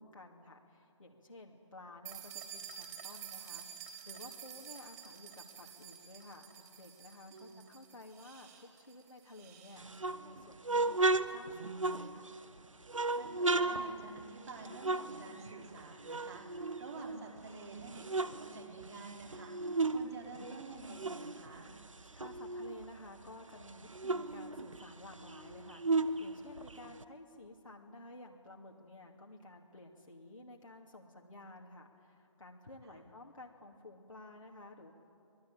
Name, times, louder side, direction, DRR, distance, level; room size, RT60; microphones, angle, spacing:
voice 1, 0.0-12.3 22.1-34.9, left 2 dB, 80° left, -1 dB, 2.4 m, -53 dB
sound 1, 2.1-9.8, right 9 dB, 30° right, 3.5 m, -50 dB
sound 2, 9.8-12.4 12.9-15.8 16.0-17.4 17.8-20.1 20.3-22.9 23.3-23.4 23.6-27.0, right 3 dB, 75° right, 1.1 m, -35 dB
voice 2, 13.1-21.7 32.8-33.0, right 3 dB, 55° right, -1 dB, 5.5 m, -49 dB
25.5 x 20.0 x 8.7 m, 2.5 s
figure-of-eight pair, 140°, 17 cm